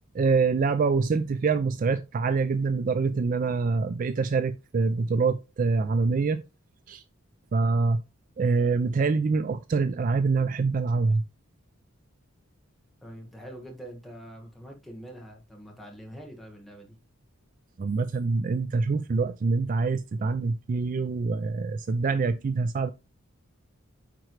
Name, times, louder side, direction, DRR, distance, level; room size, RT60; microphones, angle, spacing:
voice 1, 0.1-6.4 6.9-7.0 7.5-8.0 8.4-11.2 17.8-22.9, right 4 dB, 40° right, 0.3 m, -25 dB
voice 2, 13.0-17.0, equal, ahead, 1.5 m, -44 dB
9.0 x 4.5 x 3.2 m
head